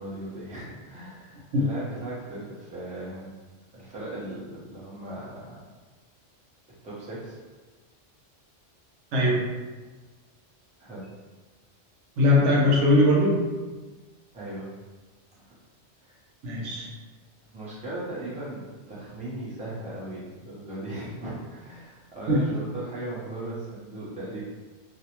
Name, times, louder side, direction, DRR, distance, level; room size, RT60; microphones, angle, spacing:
voice 1, 0.0-3.3 3.7-5.6 6.8-7.4 10.8-11.1 14.3-14.7 15.4-15.6 16.0-16.2 17.5-24.4, right 1 dB, 10° right, -8 dB, 0.5 m, -37 dB
voice 2, 9.1-9.5 12.2-13.4 16.4-16.9 22.3-22.5, left 1 dB, 85° right, -3 dB, 1.0 m, -20 dB
2.6 x 2.0 x 2.8 m, 1.3 s
omnidirectional pair, 1.2 m